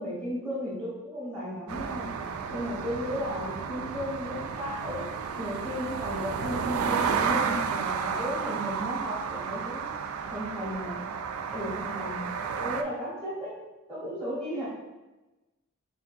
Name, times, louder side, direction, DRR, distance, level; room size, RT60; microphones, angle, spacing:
voice 1, 0.0-2.1 2.5-5.0 5.4-9.9 10.3-11.0 11.5-12.2 12.6-13.5 13.9-14.7, equal, 5° left, -8 dB, 1.2 m, -34 dB
sound 1, 1.7-12.8, right 6 dB, 80° right, 0.3 m, -32 dB
4.9 x 3.2 x 2.7 m, 1.1 s
head